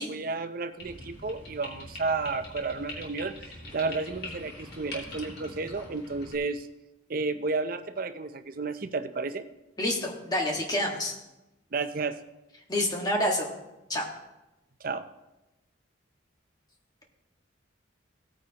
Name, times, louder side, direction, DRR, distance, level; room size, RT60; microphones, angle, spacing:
voice 1, 0.0-3.4 3.7-6.7 7.1-9.5 11.7-12.2 14.8-15.1, right 3 dB, 45° right, 10 dB, 0.6 m, -32 dB
sound 1, 0.8-6.4, left 2 dB, 55° left, 2.7 m, -43 dB
voice 2, 9.8-11.1 12.7-13.5 13.9-14.1, left 1 dB, 20° left, 0 dB, 1.7 m, -28 dB
17.0 x 9.1 x 2.9 m, 0.98 s
head